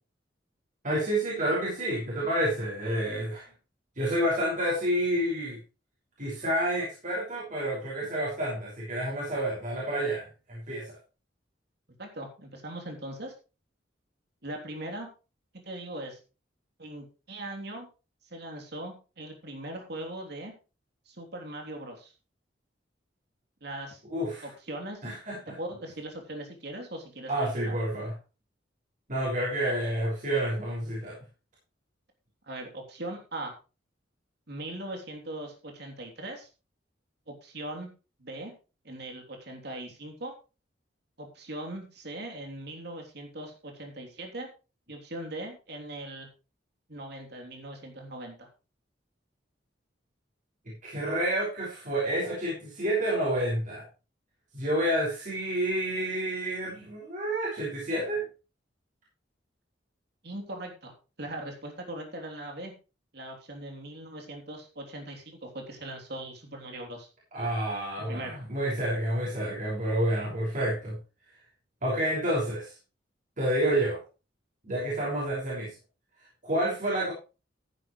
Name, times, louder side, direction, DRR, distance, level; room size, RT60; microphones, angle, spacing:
voice 1, 0.8-3.5 4.0-5.6 6.2-10.9 24.1-24.5 25.0-25.5 27.3-28.1 29.1-31.2 50.8-53.8 54.5-58.2 67.3-71.0 71.8-72.7 73.4-74.0 74.6-75.7 76.4-77.1, right 1 dB, 45° right, -6 dB, 5.9 m, -29 dB
voice 2, 12.0-13.3 14.4-15.1 15.6-16.2 16.8-17.9 18.3-20.5 21.1-22.1 23.6-24.0 24.4-25.0 25.5-27.8 29.6-29.7 32.4-33.5 34.5-36.5 37.3-37.9 38.2-38.5 38.8-40.3 41.2-44.5 44.9-46.3 46.9-48.5 60.2-60.9 61.2-62.7 63.1-67.1 68.0-68.4, right 1 dB, 65° right, 2 dB, 3.3 m, -40 dB
14.0 x 10.5 x 3.2 m, 0.32 s
head